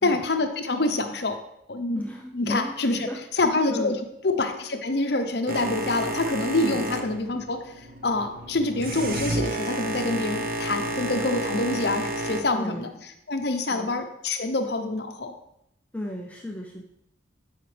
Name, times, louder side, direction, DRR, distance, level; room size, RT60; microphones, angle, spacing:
voice 1, 0.0-1.4 1.7-2.0 2.3-3.1 3.4-4.0 4.2-15.3, left 2 dB, 60° left, 6 dB, 0.8 m, -26 dB
voice 2, 2.0-3.2 3.7-3.9 6.6-6.9 12.5-12.9 13.7-14.0 15.9-16.8, equal, 10° left, -1 dB, 0.5 m, -35 dB
Boat Water vehicle, 5.5-12.4, right 1 dB, 50° right, 0.8 m, -31 dB
12.0 x 5.0 x 3.3 m, 0.81 s
head